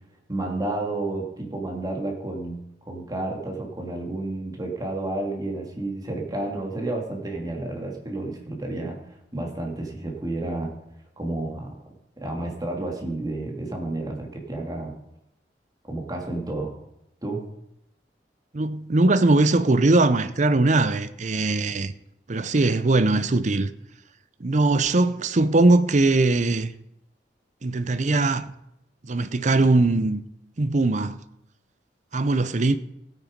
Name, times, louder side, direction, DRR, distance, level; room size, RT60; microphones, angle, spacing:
voice 1, 0.3-2.6 2.9-9.0 9.3-10.7 11.2-11.7 12.2-14.9 15.8-16.7 17.2-17.4, right 2 dB, 20° right, 2.6 m, -31 dB
voice 2, 18.5-21.9 22.3-23.7 24.4-26.7 27.6-28.5 29.0-30.2 30.6-31.2 32.1-32.8, right 2 dB, 45° right, 0.6 m, -20 dB
15.5 x 9.1 x 5.2 m
head